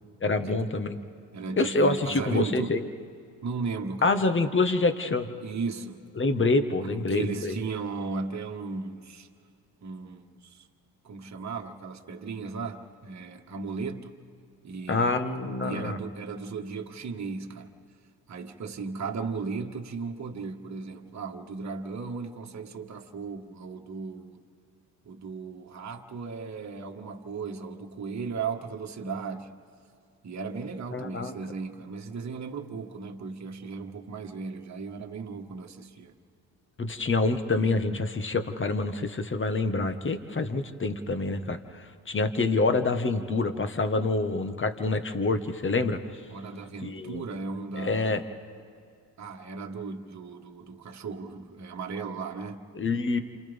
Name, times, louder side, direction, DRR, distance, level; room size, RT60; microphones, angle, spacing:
voice 1, 0.2-1.0 1.6-2.9 4.0-5.3 6.2-7.6 14.9-16.0 30.9-31.4 36.8-46.0 46.8-47.2 47.7-48.2 52.7-53.2, left 3 dB, 30° left, 1.5 m, -26 dB
voice 2, 1.3-2.7 3.4-4.2 5.4-6.1 6.8-9.3 9.8-10.7 11.0-14.2 14.6-15.2 15.6-17.7 18.3-24.4 25.0-29.5 30.2-36.1 46.3-48.2 49.2-52.6, right 4 dB, 40° right, 1.7 m, -36 dB
28.5 x 27.5 x 3.5 m
supercardioid pair, 70°, 43 cm